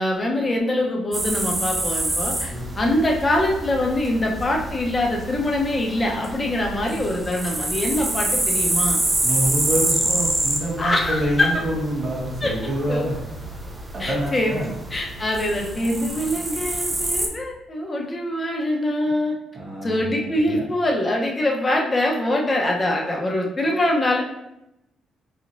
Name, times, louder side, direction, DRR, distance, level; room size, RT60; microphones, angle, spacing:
voice 1, 0.0-9.0 10.8-11.6 12.4-12.5 12.9-13.1 14.0-14.6 14.9-19.3 19.8-24.2, left 1 dB, 25° left, 0 dB, 0.8 m, -23 dB
sound 1, 1.1-17.3, right 1 dB, 20° right, 0.6 m, -27 dB
voice 2, 9.2-13.2 13.9-14.7 19.5-20.0 20.3-20.6, right 1 dB, 40° right, -4 dB, 1.4 m, -26 dB
4.1 x 3.0 x 2.6 m, 0.86 s
cardioid pair, 90°, 0 cm